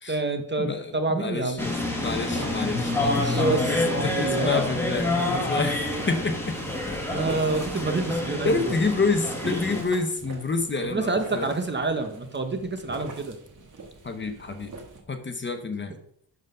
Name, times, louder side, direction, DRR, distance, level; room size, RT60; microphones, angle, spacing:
voice 1, 0.1-1.7 3.1-4.6 7.1-8.8 10.8-13.4, right 3 dB, 25° right, 6 dB, 0.7 m, -28 dB
voice 2, 0.6-3.4 3.7-6.5 8.4-11.5 14.0-14.7 15.1-16.0, left 4 dB, 25° left, 7 dB, 0.8 m, -28 dB
sound 1, 1.6-9.8, left 2 dB, 5° left, 1.5 m, -28 dB
sound 2, 2.0-15.0, right 3 dB, 45° right, 1.7 m, -42 dB
11.5 x 4.1 x 5.4 m, 0.71 s
wide cardioid pair, 175°, 42 cm